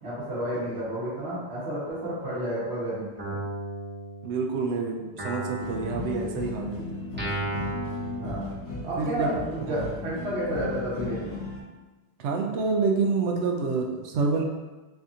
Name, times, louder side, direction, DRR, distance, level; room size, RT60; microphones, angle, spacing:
voice 1, 0.0-3.4 8.2-8.5 8.8-11.3, right 1 dB, 65° right, -10 dB, 1.2 m, -31 dB
Guitar, 3.2-4.7 5.2-9.1, right 2 dB, 10° right, 0.8 m, -36 dB
voice 2, 4.2-6.8 9.0-9.8 12.2-14.4, right 4 dB, 85° right, 1 dB, 0.9 m, -27 dB
sound 1, 5.6-11.6, left 3 dB, 85° left, 1.2 m, -36 dB
3.3 x 2.7 x 3.6 m, 1.2 s
omnidirectional pair, 1.2 m